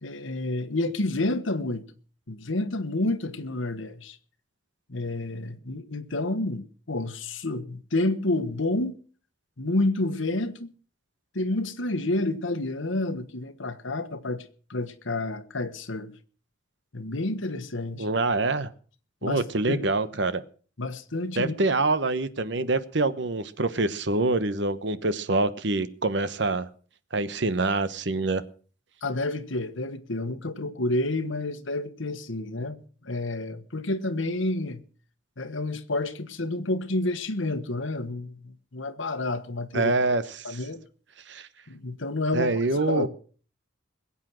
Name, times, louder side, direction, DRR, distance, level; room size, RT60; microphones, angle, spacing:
voice 1, 0.0-1.8 2.3-4.2 4.9-8.9 9.6-10.7 11.3-14.4 14.7-16.1 16.9-18.1 19.2-19.9 20.8-21.5 29.0-32.8 33.0-34.8 35.4-39.9 40.4-40.8 41.7-43.1, left 2 dB, 75° left, 1.4 m, -29 dB
voice 2, 18.0-18.7 19.2-20.4 21.4-26.7 27.1-28.4 39.7-40.6 41.3-41.5 42.3-43.1, right 2 dB, 60° right, 1.1 m, -25 dB
21.5 x 8.5 x 6.3 m
head